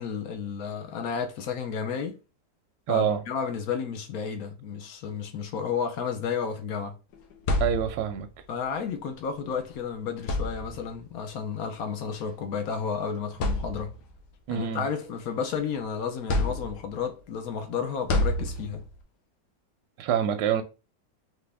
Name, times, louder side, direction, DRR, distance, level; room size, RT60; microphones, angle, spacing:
voice 1, 0.0-2.2 2.9-7.0 8.5-13.9 14.5-18.8, left 6 dB, 60° left, 1.2 m, -32 dB
voice 2, 2.9-3.2 7.6-8.3 14.5-14.8 20.0-20.6, right 9 dB, 75° right, 1.1 m, -26 dB
sound 1, 7.1-8.3 9.5-9.7 10.2-11.0 12.1-12.3 12.8-12.9 13.3-14.2 14.7-15.7 16.3-17.1 18.1-19.0, left 1 dB, 85° left, 1.5 m, -29 dB
4.1 x 3.0 x 3.4 m
omnidirectional pair, 2.0 m